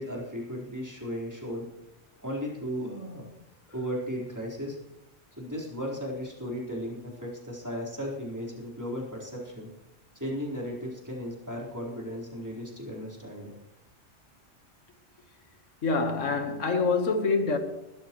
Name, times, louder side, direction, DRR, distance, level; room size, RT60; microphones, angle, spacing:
voice 1, 0.0-1.7 2.2-3.3 3.7-4.8 5.4-9.7 10.2-13.6, equal, 15° right, 4.1 m, -35 dB
voice 2, 15.8-17.6, left 4 dB, 85° left, 1.7 m, -26 dB
20.0 x 12.5 x 3.1 m
omnidirectional pair, 1.3 m